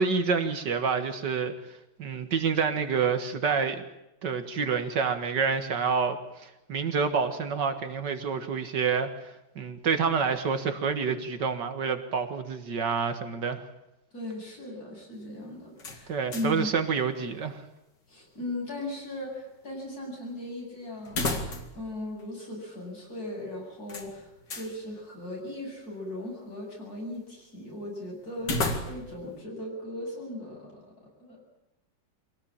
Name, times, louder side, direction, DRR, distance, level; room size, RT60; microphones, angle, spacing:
voice 1, 0.0-1.5 2.0-3.8 4.2-13.6 16.1-17.6, right 5 dB, 75° right, 8 dB, 2.3 m, -28 dB
voice 2, 14.1-16.7 18.1-21.3 21.7-24.3 24.5-30.7 31.2-31.4, left 1 dB, 55° left, -1 dB, 8.7 m, -38 dB
sound 1, 15.8-16.7 17.0-17.1 21.0-21.9 22.2-22.3 23.9-24.7 28.4-29.2, left 2 dB, 85° left, 3.0 m, -32 dB
24.5 x 17.5 x 8.9 m, 0.91 s
omnidirectional pair, 1.9 m